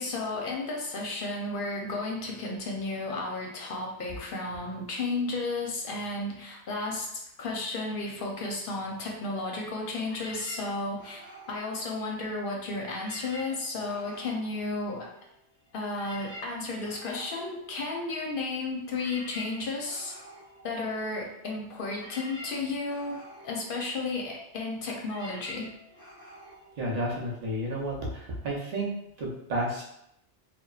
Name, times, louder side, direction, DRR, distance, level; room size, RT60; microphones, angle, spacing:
voice 1, 0.0-11.2 11.5-15.1 15.7-20.1 20.6-23.2 23.4-25.7, left 3 dB, 65° left, -1 dB, 0.7 m, -33 dB
sound 1, 10.0-12.5 12.8-15.4 15.7-27.6, equal, 15° left, 0.6 m, -48 dB
voice 2, 26.8-28.9 29.2-29.8, right 1 dB, 45° right, -3 dB, 0.6 m, -31 dB
2.9 x 2.1 x 2.3 m, 0.79 s
omnidirectional pair, 1.1 m